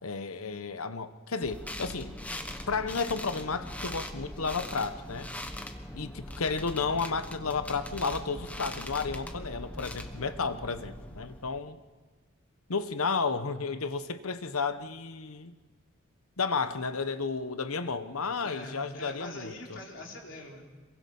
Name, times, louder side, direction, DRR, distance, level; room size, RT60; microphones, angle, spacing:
voice 1, 0.0-2.1 2.7-5.3 5.9-11.8 12.7-15.5 16.4-19.8, left 4 dB, 85° left, 11 dB, 1.1 m, -32 dB
sound 1, 1.4-11.6, left 1 dB, 5° left, 1.1 m, -41 dB
voice 2, 18.4-20.7, left 2 dB, 60° left, -1 dB, 3.8 m, -43 dB
26.5 x 23.0 x 5.5 m, 1.4 s
head